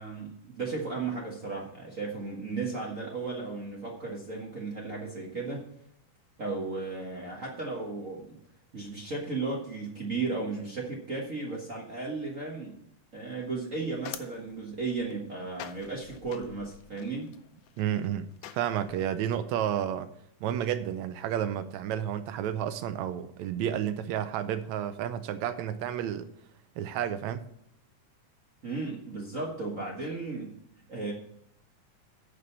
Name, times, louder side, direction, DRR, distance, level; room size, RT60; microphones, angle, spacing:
voice 1, 0.0-5.6 6.4-8.4 8.7-12.8 13.1-17.3 28.6-30.6 30.9-31.1, right 3 dB, 40° right, 1.2 m, -35 dB
sound 1, 13.4-19.0, left 12 dB, 85° left, 2.2 m, -48 dB
voice 2, 17.8-20.1 20.4-26.3 26.8-27.4, right 10 dB, 80° right, 1.8 m, -31 dB
9.8 x 5.2 x 7.0 m
omnidirectional pair, 3.5 m